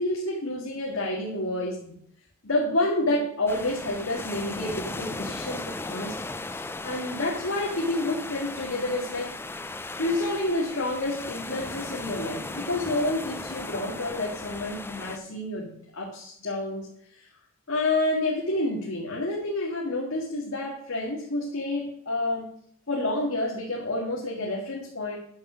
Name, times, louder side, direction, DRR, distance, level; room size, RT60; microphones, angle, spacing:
voice 1, 0.0-1.9 2.4-6.3 6.8-9.4 10.0-17.3 17.7-22.5 22.9-25.2, left 2 dB, 65° left, -2 dB, 1.9 m, -29 dB
sound 1, 3.5-15.2, left 2 dB, 10° left, 0.4 m, -37 dB
9.4 x 6.7 x 6.1 m, 0.67 s
head